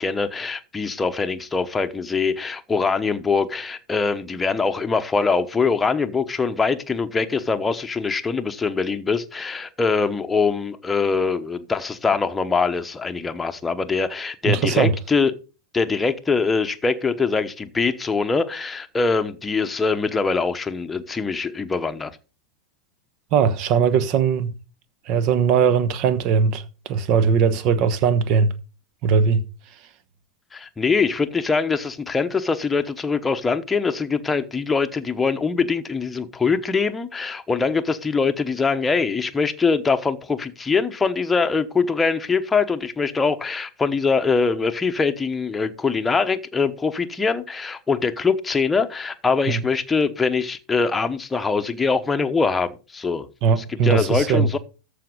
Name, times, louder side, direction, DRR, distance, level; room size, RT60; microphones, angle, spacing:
voice 1, 0.0-15.3 15.7-22.1 30.5-53.3 53.6-54.6, left 4 dB, 10° left, 1.0 m, -23 dB
voice 2, 14.5-14.9 23.3-24.5 25.1-28.5 29.0-29.4 49.5-49.6 53.4-54.5, right 6 dB, 40° right, 1.1 m, -19 dB
13.5 x 5.1 x 5.2 m
figure-of-eight pair, 90°, 0 cm